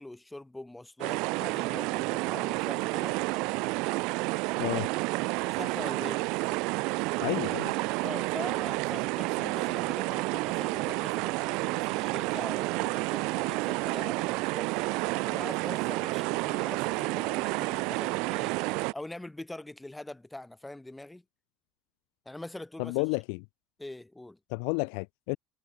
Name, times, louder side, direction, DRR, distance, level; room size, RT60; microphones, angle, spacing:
voice 1, 0.0-3.2 5.5-6.2 8.0-21.2 22.3-23.0 23.8-24.4, left 1 dB, 5° left, 5.3 m, -43 dB
sound 1, 1.0-18.9, right 26 dB, 70° right, 0.5 m, -30 dB
voice 2, 7.2-7.7 22.8-23.4 24.5-25.4, left 40 dB or more, 75° left, 1.7 m, -31 dB
supercardioid pair, 105°, 0 cm